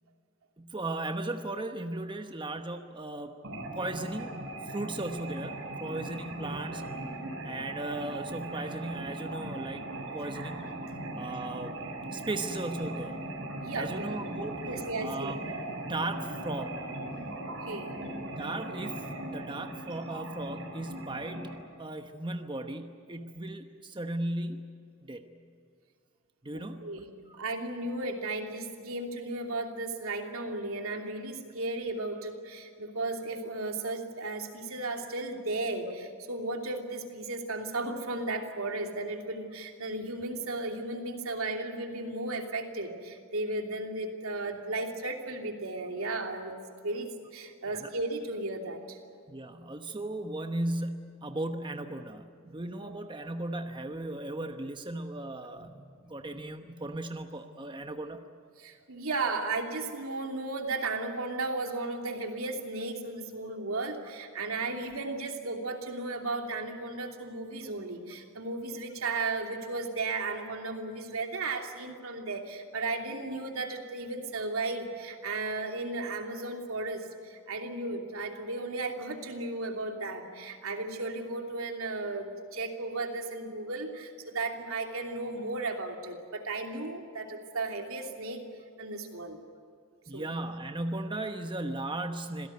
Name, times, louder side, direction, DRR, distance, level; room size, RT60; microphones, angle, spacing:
voice 1, 0.6-3.3 3.7-4.4 4.6-7.0 7.4-9.8 10.1-10.7 11.1-11.7 12.1-13.2 13.7-14.7 15.0-15.4 15.7-16.9 18.4-24.7 25.0-25.2 26.4-26.9 27.3-27.4 47.7-47.9 49.3-55.8 56.1-58.2 90.1-92.5, right 2 dB, 25° right, 6 dB, 1.1 m, -36 dB
sound 1, 3.4-21.5, right 1 dB, 65° right, 7.5 m, -39 dB
voice 2, 13.6-14.0 14.6-15.3 17.7-17.9 26.5-27.1 27.3-49.0 52.8-52.9 55.6-56.1 58.6-88.4 88.8-89.4 90.1-90.3, right 2 dB, 85° right, 3 dB, 2.9 m, -35 dB
26.5 x 17.0 x 9.4 m, 2.3 s
head